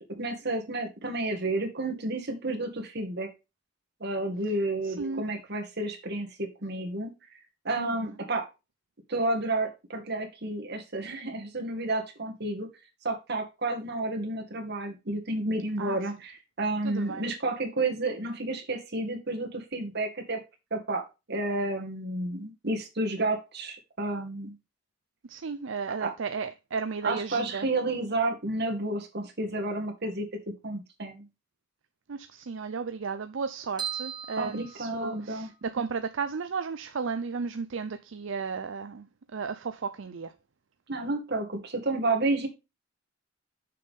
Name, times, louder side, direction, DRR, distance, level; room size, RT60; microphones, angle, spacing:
voice 1, 0.2-3.3 4.0-7.1 7.6-8.5 9.1-12.7 13.0-20.4 20.7-24.6 26.0-26.1 27.0-30.3 30.6-31.3 34.4-35.5 40.9-42.5, right 2 dB, 60° right, 2.1 m, -31 dB
voice 2, 4.8-5.2 7.8-8.1 15.8-16.0 16.8-17.2 25.3-27.7 32.1-39.1 39.3-40.3, right 5 dB, 75° right, 0.6 m, -34 dB
sound 1, 33.8-35.6, right 9 dB, 25° right, 2.4 m, -38 dB
6.7 x 5.6 x 5.2 m
head